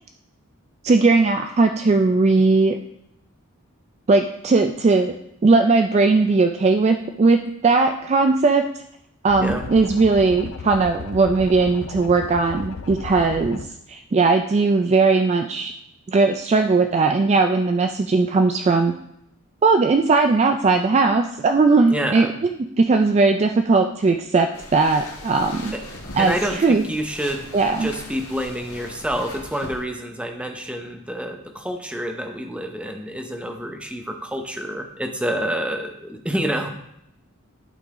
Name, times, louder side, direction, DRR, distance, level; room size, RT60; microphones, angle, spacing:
voice 1, 0.8-2.8 4.1-5.2 5.4-8.6 9.2-13.6 13.9-15.7 16.1-18.9 19.6-22.5 22.8-25.8 26.1-26.8 27.5-27.9, right 3 dB, 30° right, 6 dB, 0.3 m, -18 dB
sound 1, 9.3-13.7, left 4 dB, 60° left, 0.4 m, -35 dB
voice 2, 21.9-22.3 26.2-27.5 27.8-36.7, equal, 5° right, 3 dB, 0.7 m, -28 dB
sound 2, 24.5-29.8, left 2 dB, 80° left, 1.4 m, -39 dB
11.5 x 3.9 x 3.7 m, 0.78 s
head